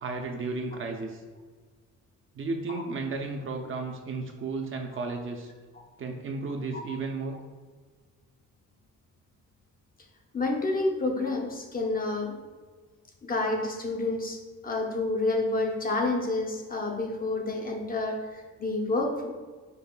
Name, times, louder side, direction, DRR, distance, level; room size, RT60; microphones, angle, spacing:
voice 1, 0.0-1.2 2.3-5.5 6.0-7.4, right 3 dB, 45° right, 3 dB, 0.5 m, -33 dB
voice 2, 10.3-12.4 13.2-19.4, left 2 dB, 30° left, 2 dB, 0.6 m, -29 dB
5.5 x 3.1 x 2.2 m, 1.4 s
cardioid pair, 90°, 30 cm